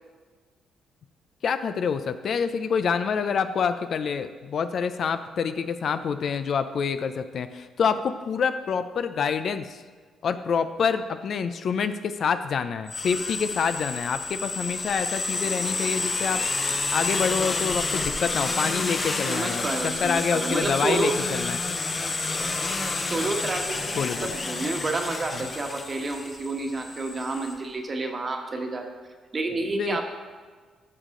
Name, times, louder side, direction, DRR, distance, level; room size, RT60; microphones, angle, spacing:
voice 1, 1.4-9.8 10.2-16.4 16.9-21.6 23.9-24.3 25.3-25.4 29.7-30.0, left 6 dB, 60° left, 10 dB, 0.5 m, -27 dB
sound 1, 12.9-27.5, left 3 dB, 30° left, 0.9 m, -29 dB
voice 2, 19.3-21.1 23.0-28.9 29.3-30.0, right 3 dB, 35° right, 3 dB, 1.3 m, -29 dB
13.0 x 6.5 x 3.8 m, 1.5 s
cardioid pair, 90°, 0 cm